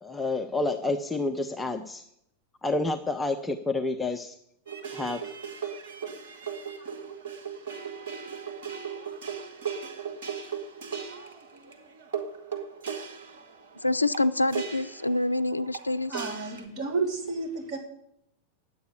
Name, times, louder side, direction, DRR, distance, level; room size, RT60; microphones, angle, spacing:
voice 1, 0.0-2.0 2.6-4.4 4.9-5.2, left 2 dB, 10° left, 5 dB, 0.7 m, -29 dB
sound 1, 4.7-16.7, right 7 dB, 60° right, 1.4 m, -38 dB
voice 2, 13.8-16.1, left 2 dB, 85° left, 14 dB, 0.4 m, -26 dB
voice 3, 16.1-17.8, right 3 dB, 30° right, -2 dB, 4.0 m, -31 dB
10.5 x 8.2 x 9.7 m, 0.76 s
figure-of-eight pair, 90°, 0 cm